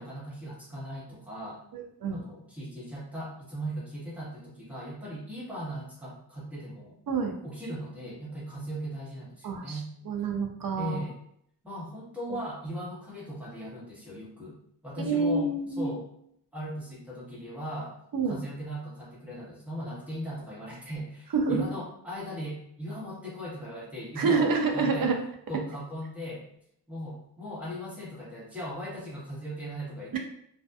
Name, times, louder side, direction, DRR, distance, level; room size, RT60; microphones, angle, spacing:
voice 1, 0.0-1.6 2.1-7.0 7.4-9.9 10.8-11.2 11.6-14.6 14.8-15.5 15.8-16.0 16.5-17.9 18.3-25.1 25.5-26.5 26.9-30.2, equal, 5° right, -7 dB, 1.0 m, -38 dB
voice 2, 1.7-2.2 7.1-7.3 9.4-9.8 10.1-11.0 15.0-15.9 18.1-18.4 21.3-21.6 24.2-25.2 30.1-30.2, right 4 dB, 60° right, 3 dB, 0.5 m, -27 dB
2.6 x 2.2 x 2.2 m, 0.71 s
wide cardioid pair, 75°, 39 cm